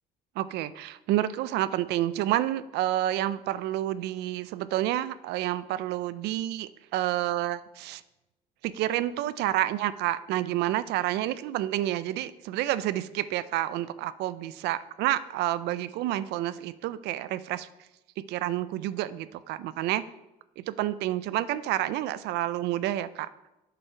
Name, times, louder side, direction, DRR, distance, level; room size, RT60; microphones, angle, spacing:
voice 1, 0.4-8.0 8.6-17.7 18.3-20.0 20.6-23.3, right 14 dB, 80° right, 16 dB, 0.4 m, -29 dB
7.0 x 5.5 x 4.4 m, 0.95 s
cardioid pair, 110°, 17 cm